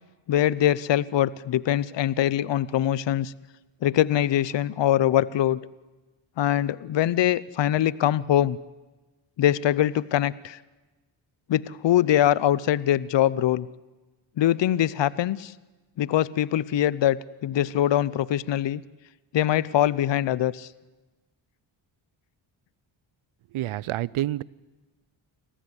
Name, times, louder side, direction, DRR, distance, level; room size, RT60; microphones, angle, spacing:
voice 1, 0.3-3.3 3.8-5.7 6.4-8.6 9.4-10.6 11.5-13.7 14.4-15.5 16.0-18.8 19.3-20.7, left 12 dB, 60° left, 20 dB, 0.8 m, -23 dB
voice 2, 23.5-24.4, right 14 dB, 75° right, 23 dB, 0.7 m, -28 dB
25.0 x 15.0 x 9.7 m, 1.2 s
cardioid pair, 65°, 50 cm